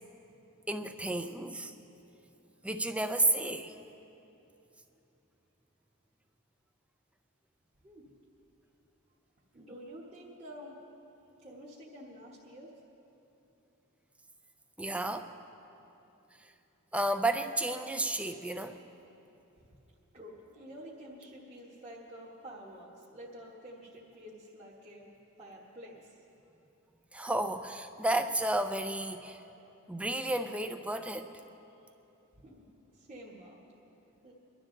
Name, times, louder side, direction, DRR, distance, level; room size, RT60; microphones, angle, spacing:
voice 1, 0.7-1.7 2.6-3.8 14.8-15.3 16.9-18.8 27.1-29.4 29.9-31.3, right 1 dB, 5° right, 8 dB, 0.5 m, -32 dB
voice 2, 9.5-10.7 11.4-12.7 19.6-19.8 20.1-25.1 25.4-26.2 32.4-32.6 32.9-33.7 34.2-34.3, equal, 30° right, -7 dB, 1.4 m, -49 dB
22.5 x 12.0 x 3.9 m, 3.0 s
head